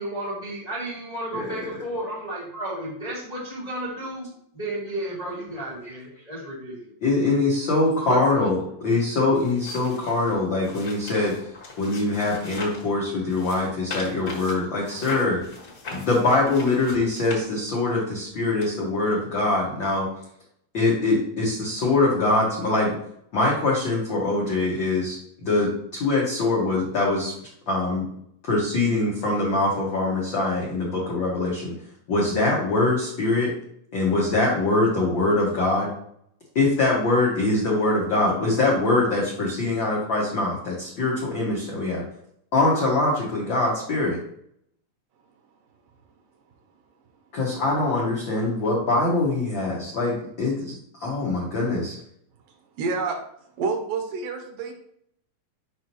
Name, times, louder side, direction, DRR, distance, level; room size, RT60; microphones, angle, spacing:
voice 1, 0.0-6.9, right 1 dB, 65° left, -6 dB, 0.4 m, -33 dB
voice 2, 7.0-8.6 8.8-11.3 11.8-15.4 15.9-20.1 20.7-22.9 23.3-27.3 27.7-28.0 28.4-31.7 32.1-33.5 33.9-35.9 36.5-42.0 42.5-44.2 47.3-52.0, left 2 dB, 85° left, -4 dB, 1.0 m, -23 dB
sound 1, 9.3-12.9 13.3-17.9 18.6-18.7, left 3 dB, 40° left, 1.4 m, -39 dB
voice 3, 52.8-53.2 53.6-54.7, right 4 dB, 75° right, 4 dB, 2.5 m, -27 dB
6.3 x 5.4 x 3.0 m, 0.70 s
omnidirectional pair, 4.0 m